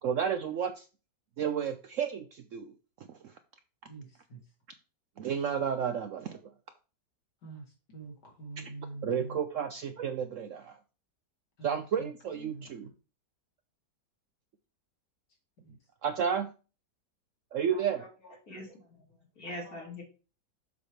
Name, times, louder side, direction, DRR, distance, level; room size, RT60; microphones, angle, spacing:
voice 1, 0.0-0.9 1.4-2.7 3.1-3.3 5.2-6.4 9.0-10.8 11.6-12.9 16.0-16.5 17.5-18.0, right 7 dB, 70° right, 9 dB, 0.7 m, -32 dB
voice 2, 3.9-4.4 7.4-7.6 7.9-9.4 11.6-12.1 12.4-12.6 15.6-15.8, right 3 dB, 70° left, -1 dB, 2.7 m, -44 dB
voice 3, 17.7-19.1 19.4-20.0, left 1 dB, 55° left, -3 dB, 2.8 m, -44 dB
7.1 x 3.4 x 6.2 m, 0.34 s
omnidirectional pair, 1.9 m